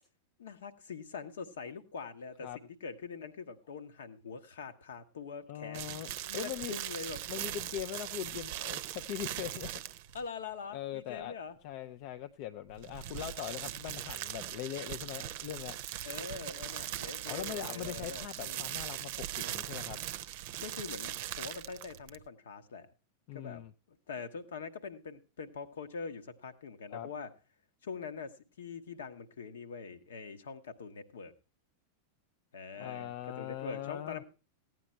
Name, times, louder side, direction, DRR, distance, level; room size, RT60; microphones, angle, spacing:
voice 1, 0.4-7.2 10.1-11.6 16.0-18.7 20.6-22.9 23.3-23.6 23.9-27.3 27.8-31.3 32.5-34.2, left 5 dB, 65° left, 9 dB, 1.1 m, -44 dB
voice 2, 5.5-6.8 7.3-9.7 10.7-11.4 11.6-15.8 17.3-20.0 23.3-23.7 26.9-27.1 32.8-34.2, left 12 dB, 45° left, 9 dB, 0.5 m, -41 dB
sound 1, 5.7-10.2 12.7-22.3, right 12 dB, 50° right, 0.6 m, -40 dB
15.5 x 9.4 x 4.3 m, 0.33 s
figure-of-eight pair, 90°, 0 cm